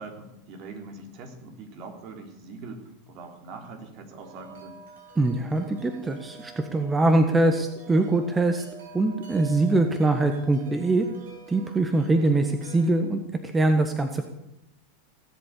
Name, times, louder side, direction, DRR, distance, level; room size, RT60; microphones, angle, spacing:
voice 1, 0.0-4.8, right 3 dB, 55° right, 4 dB, 3.5 m, -42 dB
Wind chime, 4.2-12.9, right 4 dB, 80° right, 5.8 m, -47 dB
voice 2, 5.2-8.6 8.9-11.1 11.5-13.2 13.5-14.2, right 2 dB, 15° right, 6 dB, 1.4 m, -23 dB
18.0 x 8.0 x 8.3 m, 0.85 s
hypercardioid pair, 105°, 0 cm